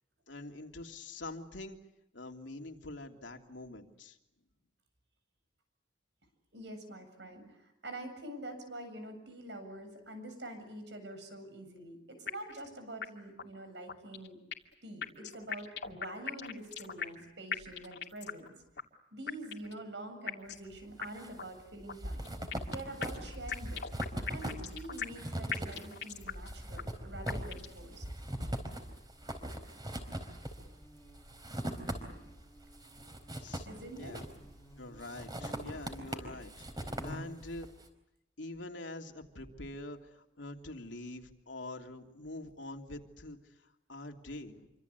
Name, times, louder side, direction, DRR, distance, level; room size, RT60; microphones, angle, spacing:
voice 1, 0.3-1.8 2.1-4.2 31.8-32.5 33.4-34.2 34.8-37.7 38.4-44.7, left 2 dB, 85° left, 3 dB, 3.0 m, -45 dB
voice 2, 6.5-14.4 14.8-18.5 19.1-22.3 22.7-23.8 24.3-28.1 33.7-34.2, right 1 dB, 70° right, 7 dB, 7.8 m, -46 dB
sound 1, 12.3-12.7 13.0-13.1 13.4-13.5 13.9-14.7 15.0-17.2 17.5-18.5 18.8-18.9 19.3-19.8 20.3-20.7 21.0-21.1 21.4-21.5 21.9-22.7 23.0-25.2 25.5-26.5 26.8-26.9 27.3-27.8, left 7 dB, 65° left, 2.5 m, -39 dB
sound 2, 20.7-21.3 21.6-32.4 32.7-34.6 35.0-37.7, right 1 dB, 20° right, 4.4 m, -40 dB
Buzz, 26.3-37.7, right 1 dB, 10° left, 3.8 m, -54 dB
27.5 x 25.5 x 8.3 m, 0.87 s
head